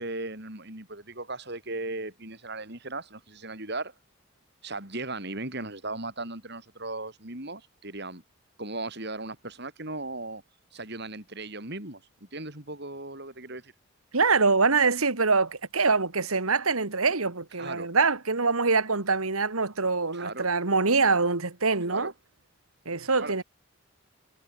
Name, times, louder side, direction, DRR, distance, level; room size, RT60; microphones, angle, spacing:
voice 1, 0.0-3.9 4.6-8.2 8.6-10.4 10.7-13.7 17.6-17.9 20.1-20.5 21.9-22.1 23.2-23.4, right 2 dB, 50° right, 5.4 m, -37 dB
voice 2, 14.1-22.1 22.9-23.4, right 4 dB, 85° right, 2.2 m, -24 dB
head